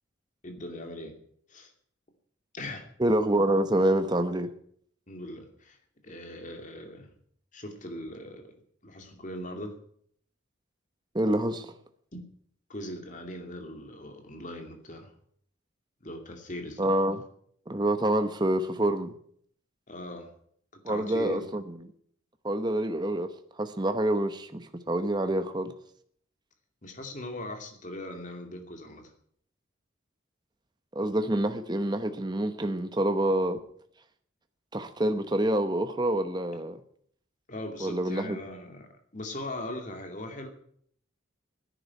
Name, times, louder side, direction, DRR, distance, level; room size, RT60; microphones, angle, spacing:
voice 1, 0.4-1.2 1.5-1.7 2.5-2.9 5.1-5.8 6.0-7.1 7.5-8.5 8.8-9.8 12.1-12.3 12.7-15.1 16.0-16.9 19.9-20.3 20.9-21.5 26.8-29.1 37.5-40.5, left 1 dB, 40° left, 2.6 m, -40 dB
voice 2, 3.0-4.5 11.1-11.7 16.8-17.2 17.7-19.1 20.8-21.6 22.4-23.3 23.6-25.7 30.9-33.6 34.7-36.8 37.8-38.4, right 1 dB, 20° right, 0.9 m, -27 dB
11.0 x 10.0 x 9.9 m
head